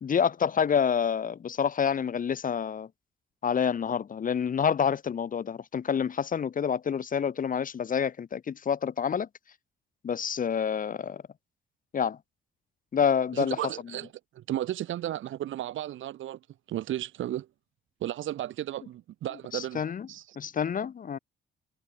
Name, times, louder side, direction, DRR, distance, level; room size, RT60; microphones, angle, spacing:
voice 1, 0.0-2.9 3.4-9.3 10.0-11.2 11.9-12.2 12.9-13.6 19.5-20.1 20.4-21.2, left 7 dB, 45° left, 1.1 m, -28 dB
voice 2, 13.3-16.4 16.7-17.5 18.0-19.8 20.1-20.2, right 13 dB, 75° right, 3.4 m, -34 dB
cardioid pair, 90°, 20 cm